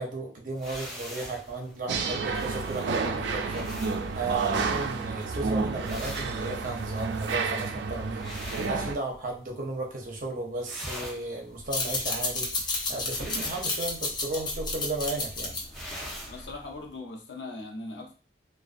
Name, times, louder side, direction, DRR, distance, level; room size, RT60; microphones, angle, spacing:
voice 1, 0.0-15.6, right 2 dB, 50° right, 0 dB, 0.7 m, -34 dB
sound 1, 0.5-9.5 9.8-10.2 10.5-16.5, equal, ahead, 0.8 m, -44 dB
sound 2, 1.9-8.9, right 4 dB, 75° right, 0.3 m, -30 dB
sound 3, 11.6-16.7, left 3 dB, 25° left, 0.4 m, -32 dB
voice 2, 16.3-18.1, left 2 dB, 80° left, 1 dB, 0.6 m, -39 dB
2.5 x 2.2 x 2.4 m, 0.39 s
head